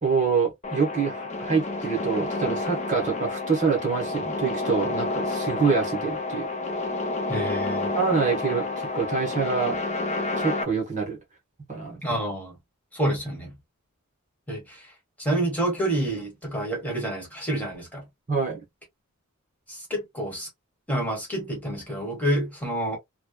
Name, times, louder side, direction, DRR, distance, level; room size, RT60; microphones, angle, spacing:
voice 1, 0.0-6.5 7.9-9.8 10.4-11.2 11.7-12.2 18.3-18.6, right 5 dB, 35° right, 1.1 m, -26 dB
sound 1, 0.6-10.6, left 2 dB, 30° left, 0.7 m, -29 dB
voice 2, 7.3-8.0 12.0-12.5 12.9-13.6 14.5-14.8 15.2-18.0 19.7-20.5 20.9-23.0, right 1 dB, 5° left, 1.3 m, -28 dB
3.1 x 2.2 x 2.2 m
head